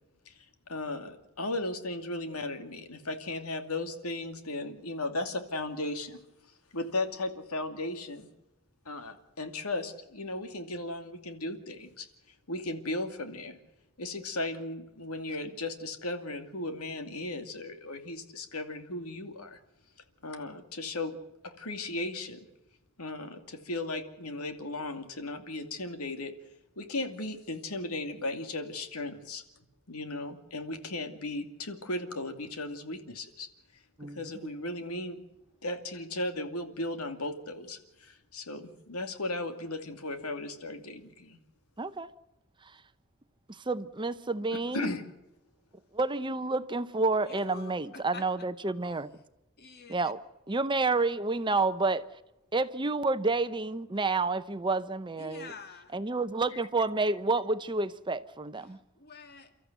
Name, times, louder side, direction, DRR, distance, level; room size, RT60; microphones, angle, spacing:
voice 1, 0.7-6.2 6.7-8.3 8.9-12.1 12.5-13.6 14.0-19.6 20.2-21.2 21.4-22.4 23.0-26.3 26.8-29.4 29.9-33.5 33.7-35.2 35.6-41.4 44.7-45.0 56.5-56.6, left 2 dB, 85° left, 2.5 m, -36 dB
voice 2, 41.8-42.1 43.7-44.9 45.9-49.1 49.9-50.2 50.5-52.0 52.5-55.5 55.9-58.8, right 3 dB, 20° right, 0.7 m, -29 dB
voice 3, 47.2-48.5 48.8-49.0 49.6-50.1 55.2-56.0 58.5-59.6, left 4 dB, 45° left, 2.3 m, -48 dB
30.0 x 13.5 x 8.1 m
head